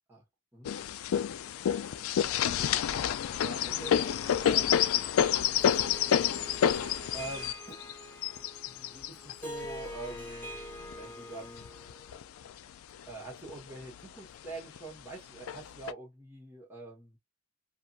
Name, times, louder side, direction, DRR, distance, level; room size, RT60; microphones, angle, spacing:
sound 1, 0.6-10.9 11.6-12.5 12.9-13.0 13.3-14.0 14.8-14.9 15.5-15.9, left 9 dB, 70° left, 0.3 m, -29 dB
voice 1, 3.4-4.9 6.6-7.8 8.6-11.7 13.0-17.2, right 2 dB, 10° right, 1.2 m, -45 dB
Harp, 3.8-12.2, equal, 10° left, 1.5 m, -45 dB
2.7 x 2.5 x 2.4 m
head